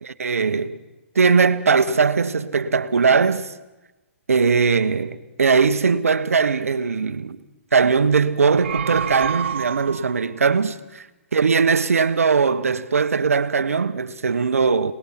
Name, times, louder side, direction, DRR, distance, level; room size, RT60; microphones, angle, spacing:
voice 1, 0.2-0.8 1.1-3.5 4.3-7.4 7.7-10.8 11.3-14.9, right 5 dB, 90° right, 1.1 m, -19 dB
sound 1, 8.4-10.3, right 8 dB, 60° right, 0.9 m, -28 dB
25.0 x 19.5 x 5.8 m
hypercardioid pair, 140°, 7 cm